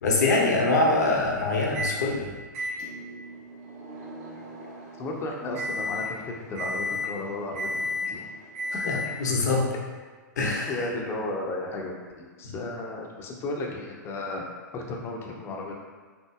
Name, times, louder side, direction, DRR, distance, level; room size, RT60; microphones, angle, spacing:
voice 1, 0.0-2.3 8.9-9.7 10.4-10.7, left 2 dB, 65° left, -2 dB, 0.9 m, -24 dB
Microwave oven, 1.7-2.0 2.5-9.4, left 2 dB, 50° right, 1.0 m, -34 dB
voice 2, 5.0-8.3 8.8-9.0 10.7-14.4 14.7-15.7, left 2 dB, 25° left, 0 dB, 0.7 m, -34 dB
5.7 x 2.7 x 2.3 m, 1.4 s
figure-of-eight pair, 105°, 10 cm